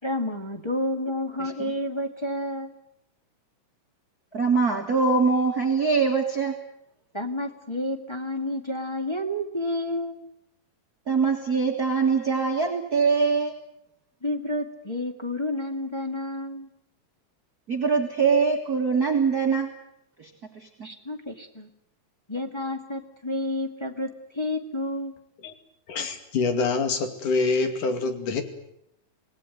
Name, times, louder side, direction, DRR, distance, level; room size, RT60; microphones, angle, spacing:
voice 1, 0.0-2.8 7.1-10.2 14.2-16.7 20.8-21.7 22.3-25.1, left 1 dB, 10° left, 2 dB, 1.7 m, -30 dB
voice 2, 1.4-1.7 4.3-6.6 11.1-13.5 17.7-19.7 20.2-20.9, right 5 dB, 35° right, 1 dB, 2.3 m, -23 dB
voice 3, 25.9-28.4, left 4 dB, 80° left, 7 dB, 4.0 m, -25 dB
26.5 x 19.0 x 9.3 m, 0.80 s
omnidirectional pair, 3.5 m